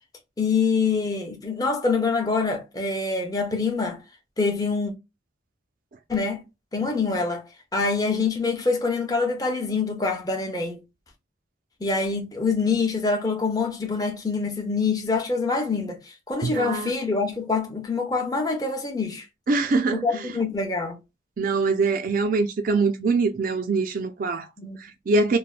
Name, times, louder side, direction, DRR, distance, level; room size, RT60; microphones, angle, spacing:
voice 1, 0.4-4.0 4.4-4.9 6.1-6.4 6.7-7.4 7.7-10.8 11.8-19.3 20.0-21.0 24.6-24.8, left 4 dB, 20° left, 0.6 m, -25 dB
voice 2, 16.4-16.9 19.5-20.3 21.4-24.5 24.8-25.4, right 3 dB, 45° right, 0.3 m, -23 dB
3.2 x 2.1 x 2.3 m
head